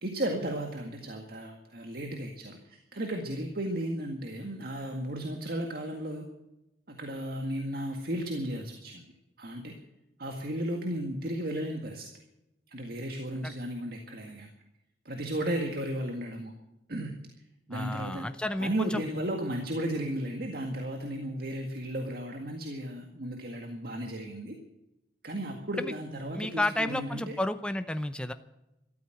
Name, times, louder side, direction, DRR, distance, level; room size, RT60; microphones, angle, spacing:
voice 1, 0.0-6.3 6.9-9.0 9.4-9.8 10.2-12.1 12.7-14.5 15.1-16.5 16.9-17.2 17.7-18.3 18.6-24.6 25.2-27.4, right 1 dB, 55° right, 3 dB, 1.9 m, -34 dB
voice 2, 17.7-19.0 25.8-25.9 26.3-28.3, left 1 dB, 5° left, 9 dB, 0.7 m, -31 dB
13.5 x 13.5 x 7.8 m, 0.92 s
head